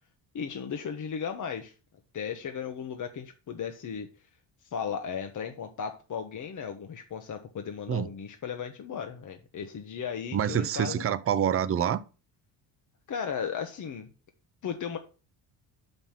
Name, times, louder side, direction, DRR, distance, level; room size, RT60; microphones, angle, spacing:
voice 1, 0.3-1.7 2.1-4.1 4.6-11.1 13.1-14.1 14.6-15.0, left 7 dB, 45° left, 1.0 m, -35 dB
voice 2, 10.3-12.0, right 9 dB, 30° right, 0.6 m, -26 dB
6.0 x 5.4 x 5.8 m
cardioid pair, 100°, 43 cm